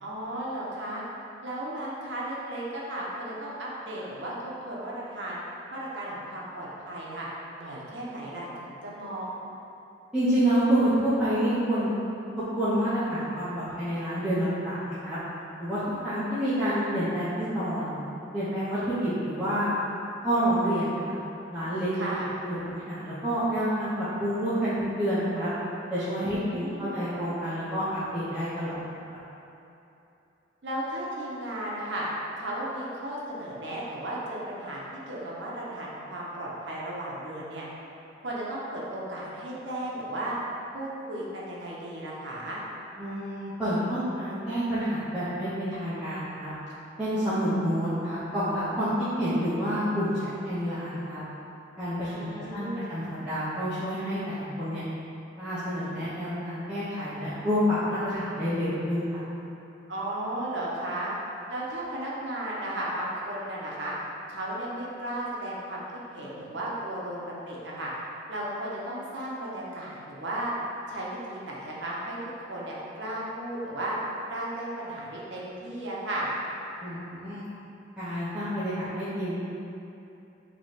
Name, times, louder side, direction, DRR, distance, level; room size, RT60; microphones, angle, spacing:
voice 1, 0.0-1.0 1.4-5.4 5.7-7.3 7.6-9.3 21.9-22.3 26.3-27.0 30.6-32.1 32.4-37.7 38.2-40.4 40.7-42.6 52.1-52.9 59.9-61.1 61.5-63.9 64.3-67.9 68.3-70.5 70.9-72.2 72.5-74.0 74.3-76.3, right 1 dB, 65° right, -5 dB, 0.8 m, -35 dB
voice 2, 10.1-11.9 12.6-15.2 15.6-18.0 18.3-19.7 20.2-21.1 21.5-21.9 22.4-25.5 25.9-28.8 43.0-46.5 47.0-51.2 51.8-54.8 55.4-59.0 76.8-77.4 78.0-79.4, equal, 5° right, -16 dB, 0.7 m, -28 dB
3.1 x 3.0 x 4.3 m, 2.8 s
head